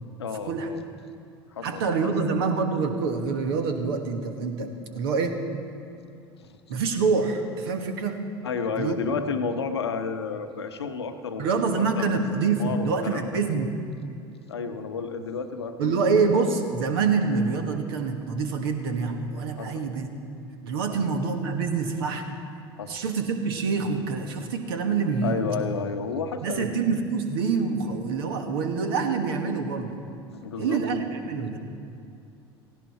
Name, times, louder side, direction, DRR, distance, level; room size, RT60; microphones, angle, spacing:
voice 1, 0.2-0.8 1.5-2.1 6.4-6.6 8.4-12.2 12.6-13.3 14.5-16.0 19.6-19.8 22.8-23.0 25.2-26.7 30.3-30.8, left 5 dB, 75° left, 7 dB, 1.0 m, -31 dB
voice 2, 1.6-5.4 6.7-8.2 8.7-9.0 11.4-13.7 15.8-20.1 20.6-22.3 22.9-25.4 26.4-30.1 30.6-31.6, right 4 dB, 65° right, 5 dB, 1.5 m, -26 dB
16.5 x 16.0 x 4.2 m, 2.6 s
figure-of-eight pair, 70°, 14 cm